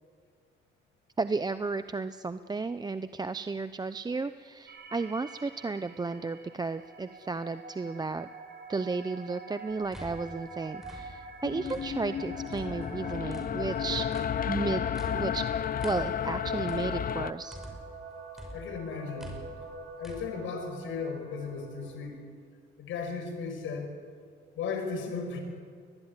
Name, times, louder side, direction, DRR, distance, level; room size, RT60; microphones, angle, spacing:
voice 1, 1.2-8.3 8.7-14.1 14.5-14.9 15.1-15.5 15.8-17.6, right 4 dB, 20° right, 12 dB, 0.7 m, -33 dB
sound 1, 4.7-22.0, right 3 dB, 55° right, 6.6 m, -47 dB
sound 2, 9.7-12.1 12.5-18.0 18.4-20.2, equal, ahead, 5.9 m, -47 dB
sound 3, 11.4-17.3, left 8 dB, 45° left, 0.7 m, -32 dB
voice 2, 18.5-19.3 20.0-22.2 22.8-23.9 24.6-25.4, left 5 dB, 85° left, 5 dB, 5.5 m, -36 dB
21.5 x 20.5 x 10.0 m, 2.1 s
cardioid pair, 90°, 20 cm